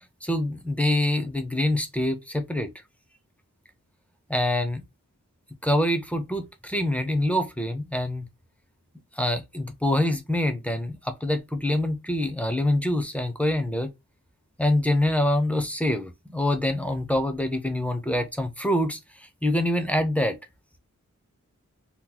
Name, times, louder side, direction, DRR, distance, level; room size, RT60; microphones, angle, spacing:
voice 1, 0.2-2.7 4.3-4.8 5.6-8.3 9.2-13.9 14.6-20.4, left 1 dB, 5° left, 0.7 m, -25 dB
3.0 x 2.2 x 3.8 m
wide cardioid pair, 55°, 30 cm